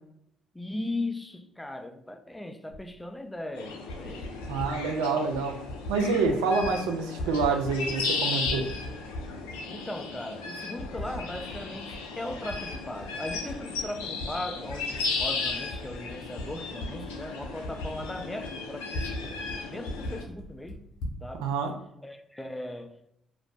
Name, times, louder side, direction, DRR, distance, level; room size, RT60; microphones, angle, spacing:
voice 1, 0.5-4.4 9.7-20.9 21.2-21.5 22.0-23.1, left 1 dB, 10° left, 0.3 m, -38 dB
Typing, 2.7-2.8 3.7-4.7 5.3-6.0 6.2-6.7 7.0-8.1 8.4-9.6 10.1-10.2 10.8-11.6 11.9-14.3 14.6-19.2 19.5-19.6 19.8-21.2, left 1 dB, 65° left, 0.7 m, -38 dB
sound 1, 3.6-20.2, left 4 dB, 85° left, 0.3 m, -35 dB
voice 2, 4.5-5.5 5.9-8.7 21.4-21.7, right 4 dB, 80° right, 0.3 m, -27 dB
2.4 x 2.1 x 3.2 m
hypercardioid pair, 50°, 0 cm